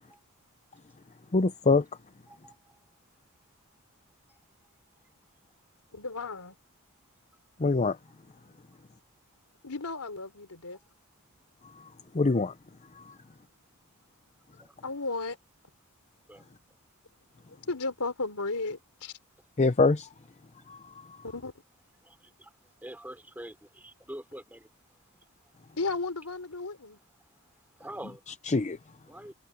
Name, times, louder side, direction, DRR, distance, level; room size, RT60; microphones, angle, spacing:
voice 1, 1.3-1.9 7.6-8.0 11.8-11.9 12.1-12.5 13.0-13.1 19.6-20.1 20.7-21.2 28.5-28.8, left 3 dB, 30° left, 0.6 m, -25 dB
voice 2, 2.3-2.8 4.3-4.4 14.6-14.7 16.3-16.4 22.0-22.5 22.8-24.7 27.8-28.2 29.1-29.3, right 1 dB, 10° right, 3.9 m, -45 dB
voice 3, 5.9-6.6 9.6-10.8 14.8-15.4 17.5-19.1 21.2-21.5 25.8-27.0, left 3 dB, 85° left, 3.6 m, -34 dB
head